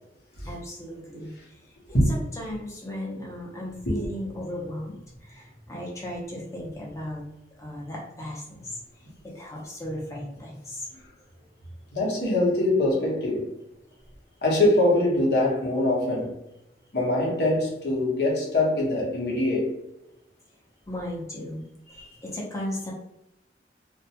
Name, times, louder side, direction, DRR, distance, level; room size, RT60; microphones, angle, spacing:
voice 1, 0.4-1.6 1.9-7.2 7.6-8.8 9.2-10.9 20.9-21.6 21.9-22.9, left 1 dB, 15° left, -3 dB, 0.7 m, -36 dB
voice 2, 11.9-13.5 14.4-16.4 16.9-19.8 22.0-22.1, left 1 dB, 65° left, -4 dB, 1.0 m, -23 dB
2.5 x 2.2 x 2.8 m, 0.88 s
head